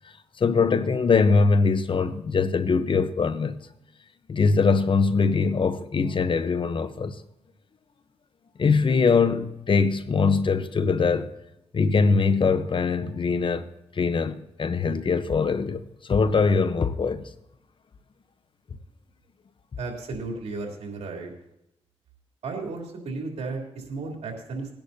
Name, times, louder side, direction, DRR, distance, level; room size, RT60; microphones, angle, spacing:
voice 1, 0.4-3.6 4.3-7.2 8.6-11.3 11.7-13.7 13.9-17.3, left 4 dB, 50° left, 0.9 m, -22 dB
voice 2, 19.8-21.3 22.4-24.7, right 3 dB, 75° right, 3.4 m, -34 dB
20.5 x 10.5 x 2.8 m
cardioid pair, 60°, 11 cm